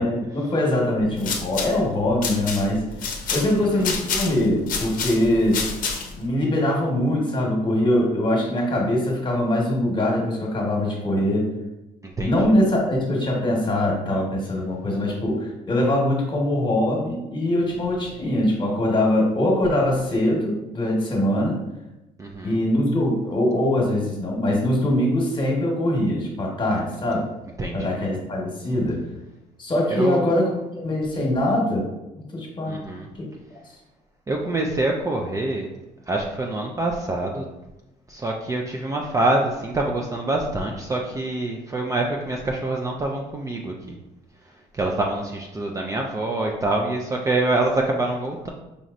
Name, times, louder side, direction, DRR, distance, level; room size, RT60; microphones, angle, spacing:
voice 1, 0.0-2.8 3.3-5.6 6.2-11.5 12.2-21.6 22.4-27.3 27.7-29.0 29.6-31.9 32.2-32.7 33.2-33.3, left 1 dB, 30° left, -1 dB, 1.2 m, -22 dB
sound 1, 1.0-6.3, left 5 dB, 55° left, 0.7 m, -29 dB
voice 2, 3.5-3.9 12.0-12.3 22.2-22.6 27.6-28.0 29.9-30.3 32.7-33.1 34.3-35.7 36.1-37.4 38.1-44.0 44.7-48.5, right 2 dB, 20° right, 0 dB, 0.4 m, -25 dB
5.2 x 3.0 x 2.5 m, 0.96 s
cardioid pair, 110°, 17 cm